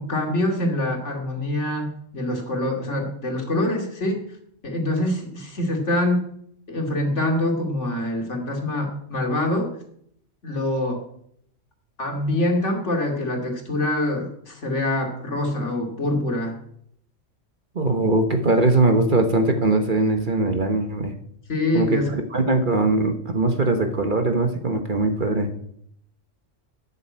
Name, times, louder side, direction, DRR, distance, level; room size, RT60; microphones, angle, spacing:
voice 1, 0.0-4.2 4.6-6.2 6.7-9.7 10.4-11.0 12.0-16.5 21.5-22.1, left 1 dB, 70° left, 1 dB, 2.8 m, -25 dB
voice 2, 17.7-21.1 21.7-22.0 22.3-25.5, right 2 dB, 40° right, 6 dB, 1.3 m, -21 dB
12.0 x 7.0 x 8.6 m, 0.70 s
omnidirectional pair, 1.3 m